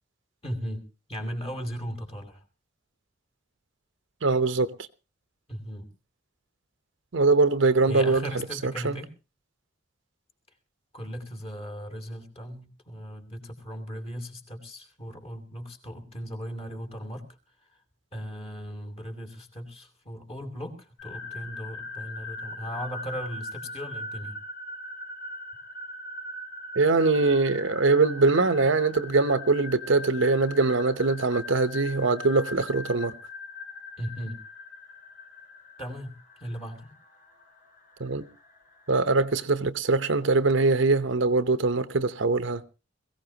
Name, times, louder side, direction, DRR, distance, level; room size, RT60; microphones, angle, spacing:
voice 1, 0.4-0.8 1.1-2.4 5.5-5.9 7.9-9.1 10.9-17.3 18.1-24.4 34.0-34.4 35.8-36.1 36.4-36.9, equal, 30° left, 2.9 m, -37 dB
voice 2, 4.2-4.7 7.1-9.0 26.8-33.1 38.0-38.3 38.9-42.6, right 3 dB, 70° right, 0.9 m, -23 dB
sound 1, 21.0-39.0, left 2 dB, 50° left, 3.5 m, -41 dB
22.0 x 16.0 x 2.9 m
head